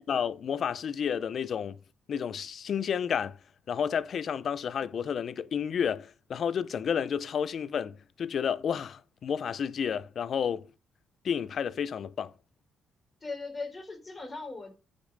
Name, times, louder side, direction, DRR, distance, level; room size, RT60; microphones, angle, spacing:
voice 1, 0.1-1.8 2.1-3.4 3.7-10.7 11.2-12.3, left 7 dB, 55° left, 0.6 m, -31 dB
voice 2, 13.2-14.7, left 3 dB, 25° left, 3.9 m, -38 dB
8.7 x 5.3 x 6.6 m
cardioid pair, 90°, 0 cm